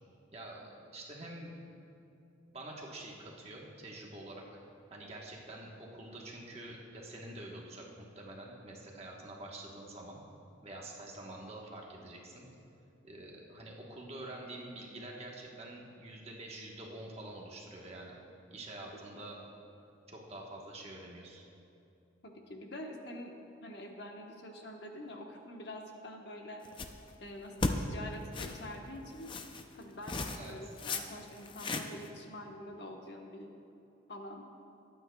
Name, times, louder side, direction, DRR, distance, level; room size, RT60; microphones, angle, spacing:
voice 1, 0.3-1.5 2.5-4.4 4.9-10.2 10.6-12.5 13.0-18.2 18.5-19.4 20.1-21.4 30.3-30.7, right 1 dB, 30° right, -2 dB, 1.2 m, -47 dB
voice 2, 22.2-26.6 27.2-29.3 29.7-33.5 34.1-34.4, left 1 dB, 55° left, 2 dB, 1.1 m, -46 dB
sound 1, 26.7-27.1 27.6-27.7 28.3-28.6 29.2-29.6 30.0-30.5 30.8-31.0 31.3-32.1, left 3 dB, 25° left, 0.4 m, -35 dB
21.0 x 9.1 x 2.3 m, 2.7 s
head